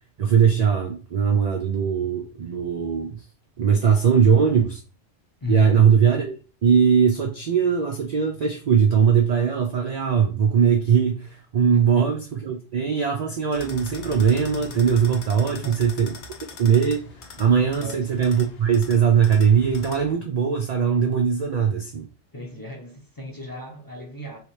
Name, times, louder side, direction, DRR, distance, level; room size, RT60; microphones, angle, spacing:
voice 1, 0.2-3.2 3.6-4.8 5.5-16.1 16.6-17.0 17.4-22.1, right 7 dB, 75° right, 0.3 m, -20 dB
voice 2, 5.4-5.8 11.7-12.0 15.4-15.8 16.1-16.2 17.7-18.2 22.3-24.4, left 3 dB, 25° left, 0.6 m, -35 dB
sound 1, 13.5-20.1, left 6 dB, 65° left, 0.9 m, -41 dB
3.1 x 3.1 x 3.1 m
omnidirectional pair, 1.3 m